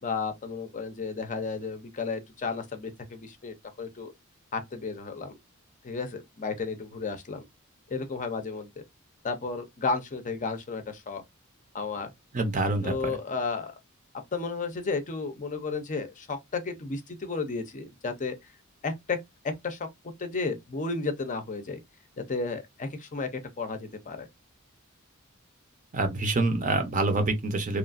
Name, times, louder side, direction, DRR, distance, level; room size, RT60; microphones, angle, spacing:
voice 1, 0.0-4.1 4.5-5.3 5.8-7.4 7.9-8.7 9.2-11.2 11.7-12.1 12.8-13.7 14.3-18.3 18.8-19.2 19.6-19.9 20.2-21.8 22.3-23.3 23.6-24.3, left 4 dB, 35° left, 0.5 m, -33 dB
voice 2, 12.3-13.2 25.9-27.8, right 2 dB, 40° right, 0.6 m, -26 dB
3.0 x 2.4 x 2.4 m
head